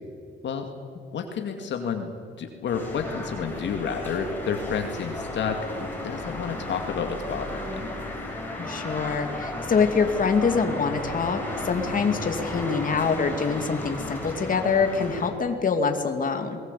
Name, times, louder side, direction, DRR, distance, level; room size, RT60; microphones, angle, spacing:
voice 1, 1.1-2.1 2.4-5.6 6.0-7.9, left 6 dB, 65° left, 5 dB, 2.3 m, -30 dB
sound 1, 2.7-15.3, left 1 dB, 10° left, 6.4 m, -34 dB
voice 2, 8.6-16.6, left 5 dB, 45° left, 5 dB, 2.5 m, -25 dB
22.5 x 19.0 x 8.5 m, 2.4 s
cardioid pair, 90°, 20 cm